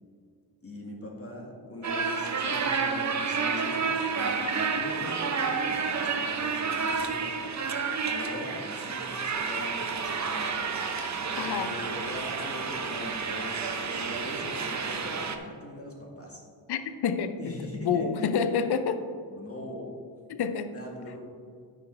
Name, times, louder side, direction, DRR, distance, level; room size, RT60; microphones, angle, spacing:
voice 1, 0.6-7.4 8.0-10.5 11.2-16.4 17.4-18.4 19.3-20.0 20.7-21.2, left 1 dB, 30° left, -1 dB, 2.2 m, -41 dB
sound 1, 1.8-15.4, right 5 dB, 40° right, 0.9 m, -30 dB
voice 2, 11.4-11.7 16.7-19.0 20.3-20.7, left 6 dB, 60° left, 10 dB, 0.7 m, -28 dB
10.0 x 5.3 x 4.5 m, 2.2 s
cardioid pair, 60°, 45 cm